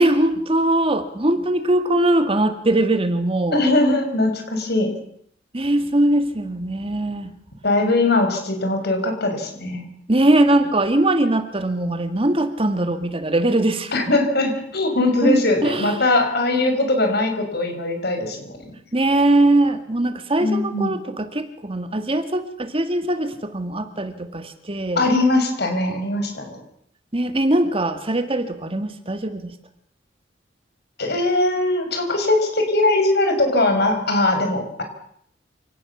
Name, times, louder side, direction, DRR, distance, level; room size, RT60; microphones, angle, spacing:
voice 1, 0.0-3.6 5.5-7.3 10.1-13.9 15.2-16.1 18.9-25.1 27.1-29.5, right 1 dB, 30° right, 9 dB, 1.8 m, -21 dB
voice 2, 3.5-4.9 7.6-9.8 13.9-18.6 20.4-21.0 25.0-26.6 31.0-34.8, left 2 dB, 60° left, 5 dB, 6.4 m, -20 dB
27.5 x 18.5 x 7.2 m, 0.66 s
head